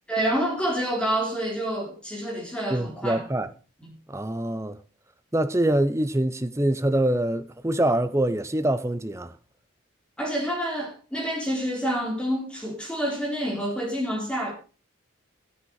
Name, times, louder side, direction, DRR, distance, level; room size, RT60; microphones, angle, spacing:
voice 1, 0.1-3.2 3.8-4.0 10.2-14.5, equal, 5° left, 4.1 m, -28 dB
voice 2, 2.7-3.5 4.1-4.8 5.3-9.4, right 1 dB, 15° right, 0.8 m, -24 dB
13.5 x 9.8 x 4.8 m
head